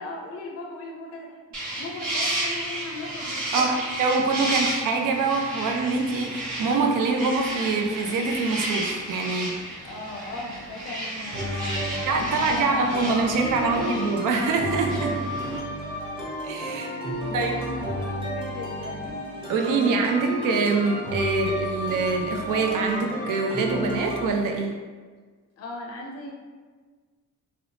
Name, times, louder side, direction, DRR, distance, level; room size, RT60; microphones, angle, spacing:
voice 1, 0.0-1.4 1.7-3.9 5.4-5.6 9.8-14.0 15.4-15.6 16.7-19.3 25.6-26.3, left 2 dB, 50° left, 0 dB, 0.5 m, -37 dB
sound 1, 1.5-15.6, right 1 dB, 65° right, 1.0 m, -32 dB
voice 2, 4.0-9.6 12.1-15.1 16.4-16.9 17.3-17.5 19.5-24.8, right 4 dB, 80° right, 3 dB, 0.5 m, -24 dB
sound 2, 11.3-24.3, equal, 15° right, 0.8 m, -32 dB
2.8 x 2.0 x 2.7 m, 1.5 s
cardioid pair, 75°, 32 cm